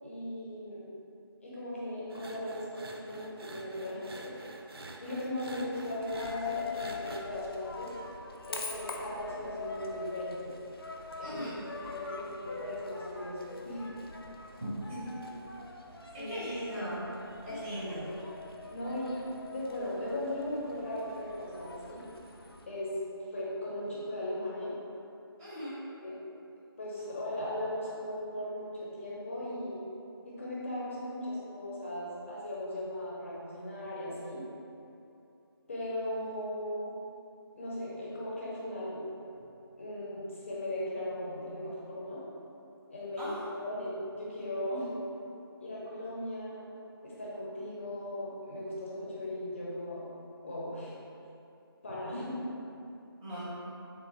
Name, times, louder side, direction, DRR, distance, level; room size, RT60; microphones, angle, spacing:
voice 1, 0.0-0.9 1.4-4.3 5.0-7.9 8.5-10.5 11.2-11.4 11.7-13.9 16.2-16.4 17.5-18.1 18.7-19.2 19.5-22.0 22.7-22.9 23.3-24.7 26.0-26.1 26.8-29.8 30.2-34.4 35.7-36.9 37.6-39.0 39.8-42.2 42.9-44.9 45.6-46.7 47.0-50.1 50.4-50.9 51.8-52.3, left 1 dB, 30° left, -7 dB, 0.7 m, -38 dB
sound 1, 2.1-7.2, right 2 dB, 70° right, 0.4 m, -46 dB
Coin (dropping), 6.0-22.7, left 4 dB, 70° left, 0.4 m, -43 dB
voice 2, 11.2-11.6 14.9-15.0 15.5-15.6 16.3-17.0 17.4-18.1 25.4-25.8 43.2-43.4 53.2-53.4, equal, 5° right, -14 dB, 0.5 m, -38 dB
3.5 x 2.8 x 2.9 m, 2.8 s
figure-of-eight pair, 165°, 13 cm